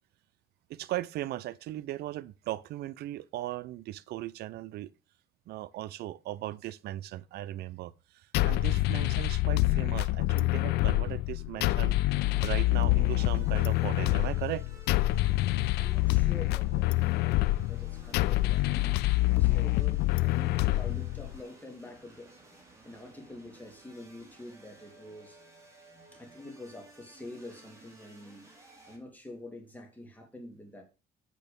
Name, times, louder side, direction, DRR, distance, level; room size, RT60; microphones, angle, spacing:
voice 1, 0.7-4.9 5.5-7.9 8.4-14.6, right 15 dB, 75° right, 0.6 m, -38 dB
sound 1, 8.3-21.4, left 18 dB, 80° left, 0.4 m, -26 dB
sound 2, 12.2-29.0, right 2 dB, 15° right, 4.2 m, -56 dB
voice 2, 15.8-22.3 22.8-25.4 26.1-28.5 28.9-30.8, left 1 dB, 10° left, 3.1 m, -47 dB
8.5 x 6.7 x 5.3 m
cardioid pair, 110°, 17 cm